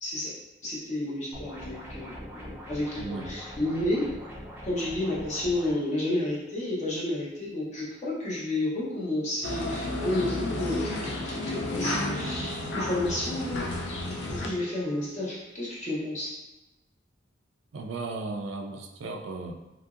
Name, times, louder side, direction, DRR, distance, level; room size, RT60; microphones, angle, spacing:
voice 1, 0.0-0.3 0.6-4.0 4.6-13.7 14.1-16.3, left 1 dB, 35° left, -7 dB, 0.9 m, -31 dB
sound 1, 1.3-5.7, equal, 10° right, 0.5 m, -42 dB
voice 2, 3.0-3.3 17.7-19.5, right 3 dB, 80° right, 2 dB, 0.4 m, -35 dB
sound 2, 9.4-14.5, left 2 dB, 65° left, 0.5 m, -32 dB
Wind instrument woodwind instrument, 11.2-15.4, right 5 dB, 20° left, 1.2 m, -46 dB
2.9 x 2.6 x 2.4 m, 1.0 s
head